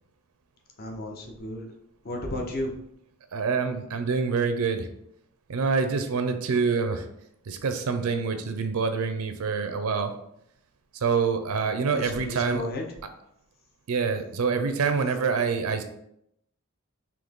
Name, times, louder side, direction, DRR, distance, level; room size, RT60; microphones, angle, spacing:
voice 1, 0.8-1.7 2.0-2.7 11.9-12.8, left 1 dB, 45° left, 2 dB, 0.7 m, -33 dB
voice 2, 3.3-4.9 5.5-7.1 7.5-10.1 10.9-12.7 13.9-15.8, right 5 dB, 85° right, 8 dB, 0.5 m, -26 dB
3.9 x 2.9 x 3.6 m, 0.76 s
head